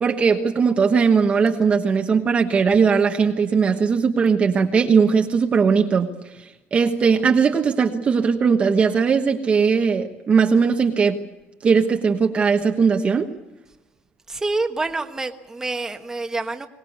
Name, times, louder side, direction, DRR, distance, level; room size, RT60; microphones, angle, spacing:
voice 1, 0.0-6.1 6.4-11.2 11.6-13.3, right 5 dB, 30° right, 4 dB, 1.2 m, -19 dB
voice 2, 14.3-16.7, right 3 dB, 10° right, 5 dB, 1.3 m, -27 dB
23.5 x 19.5 x 8.1 m, 1.0 s
cardioid pair, 165°, 4 cm